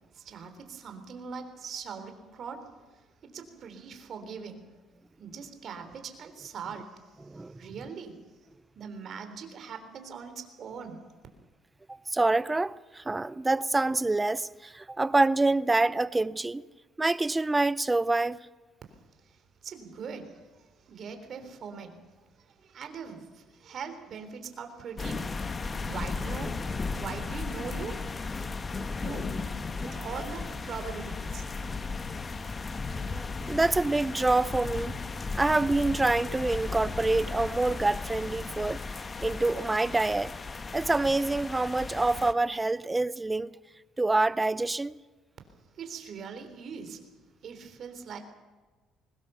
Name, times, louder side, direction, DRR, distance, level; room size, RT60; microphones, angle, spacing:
voice 1, 0.0-4.7 5.2-8.2 8.7-11.1 18.9-26.5 26.8-28.4 28.9-29.3 29.8-31.5 45.7-47.1 47.4-48.2, right 6 dB, 55° right, 3.7 m, -42 dB
voice 2, 7.3-7.6 11.9-16.6 17.0-18.4 33.1-34.9 35.3-38.8 39.2-40.3 40.7-43.5 44.0-45.0, right 2 dB, 15° right, 0.6 m, -26 dB
sound 1, 25.0-42.3, left 4 dB, 30° left, 1.3 m, -35 dB
22.0 x 20.0 x 7.0 m
cardioid pair, 90°, 0 cm